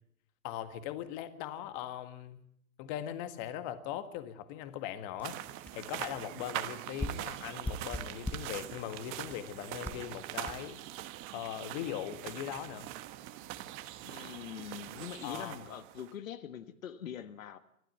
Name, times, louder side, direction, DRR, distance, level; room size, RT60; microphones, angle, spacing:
voice 1, 0.4-2.4 2.8-5.4 5.7-10.8 11.3-12.9 15.2-15.6, left 11 dB, 35° left, 1.7 m, -40 dB
sound 1, 5.2-5.3 5.7-5.8 6.0-6.2 7.0-8.6 9.3-9.4 9.8-10.1 10.5-10.6, left 1 dB, 5° left, 1.0 m, -39 dB
sound 2, 5.2-16.1, right 15 dB, 30° right, 1.4 m, -43 dB
voice 2, 14.0-17.6, left 9 dB, 65° left, 1.6 m, -43 dB
26.5 x 12.0 x 9.2 m
hypercardioid pair, 130°, 43 cm